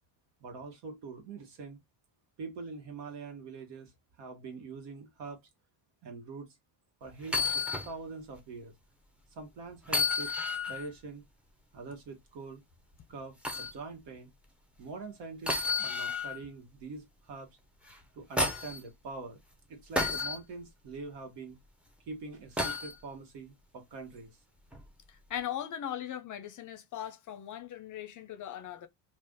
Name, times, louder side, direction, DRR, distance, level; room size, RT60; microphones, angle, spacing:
voice 1, 0.4-1.8 2.4-3.9 4.2-5.4 6.0-6.5 7.0-8.7 9.3-10.3 10.7-11.2 11.7-12.6 13.1-14.3 14.8-17.6 18.1-19.4 19.7-21.6 22.1-24.4, right 4 dB, 65° right, 1.3 m, -44 dB
sound 1, 7.2-7.9 8.4-8.5 9.9-10.9 13.4-13.7 15.5-16.4 17.9-18.8 20.0-20.4 22.6-22.9 24.7-24.9, left 3 dB, 5° right, 0.6 m, -31 dB
voice 2, 25.3-28.9, left 10 dB, 45° left, 0.6 m, -39 dB
2.5 x 2.5 x 3.4 m
supercardioid pair, 95°, 45 cm